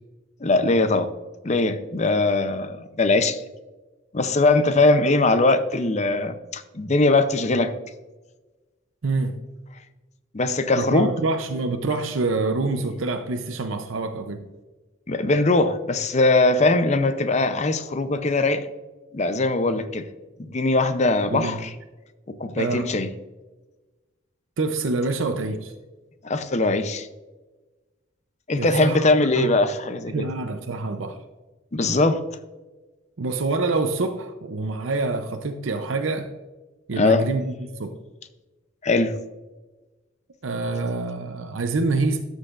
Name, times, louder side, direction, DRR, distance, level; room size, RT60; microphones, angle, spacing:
voice 1, 0.4-1.1 1.4-3.4 4.1-7.7 10.3-11.1 15.1-18.7 19.1-20.0 20.5-21.7 22.4-23.1 26.2-27.1 28.5-30.3 31.7-32.2 37.0-37.2 38.8-39.1, left 2 dB, 35° left, 10 dB, 0.6 m, -21 dB
voice 2, 9.0-9.4 10.8-14.5 21.3-21.6 22.6-22.9 24.6-25.7 28.6-29.5 30.1-31.2 33.2-36.3 36.9-38.0 40.4-42.2, right 3 dB, 80° right, 6 dB, 0.7 m, -26 dB
13.0 x 6.5 x 2.5 m, 1.2 s
head